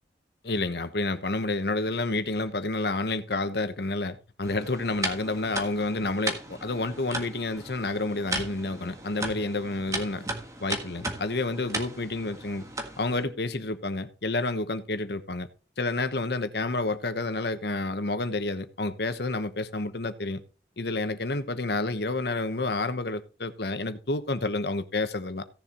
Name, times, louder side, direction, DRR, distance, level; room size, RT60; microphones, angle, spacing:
voice 1, 0.4-10.3 10.6-12.7 13.0-15.5 15.8-20.4 20.8-25.4, left 2 dB, 65° left, 1.1 m, -29 dB
sound 1, 4.4-13.2, right 2 dB, 20° right, 1.5 m, -36 dB
17.0 x 7.1 x 3.0 m
head